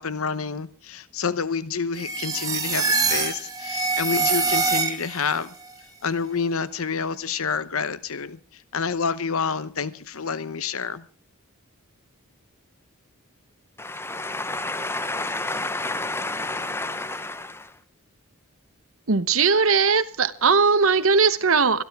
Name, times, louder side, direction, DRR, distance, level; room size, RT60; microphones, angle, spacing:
voice 1, 0.0-5.5 6.0-8.4 8.7-11.0, left 5 dB, 75° left, 0.9 m, -28 dB
sound 1, 1.9-5.3, right 4 dB, 15° right, 2.0 m, -24 dB
voice 2, 13.8-17.7, left 2 dB, 10° left, 0.9 m, -30 dB
voice 3, 19.1-21.8, right 5 dB, 65° right, 1.1 m, -19 dB
26.0 x 12.0 x 3.6 m
head